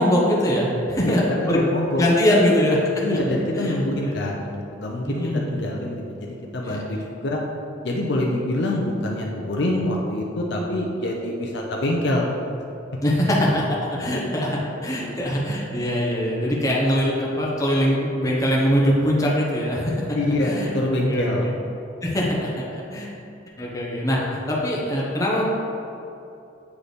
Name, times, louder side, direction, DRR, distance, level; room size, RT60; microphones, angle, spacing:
voice 1, 0.0-1.7 2.0-3.2 3.6-3.7 5.1-5.6 6.7-6.8 13.0-13.6 14.0-20.0 20.4-20.7 21.1-21.3 22.0-23.1 23.6-25.5, equal, 15° left, -5 dB, 0.9 m, -22 dB
voice 2, 1.0-2.0 3.0-7.4 7.8-12.3 14.3-14.4 20.1-21.5, left 1 dB, 60° left, -1 dB, 0.6 m, -25 dB
8.2 x 3.3 x 4.1 m, 2.7 s
head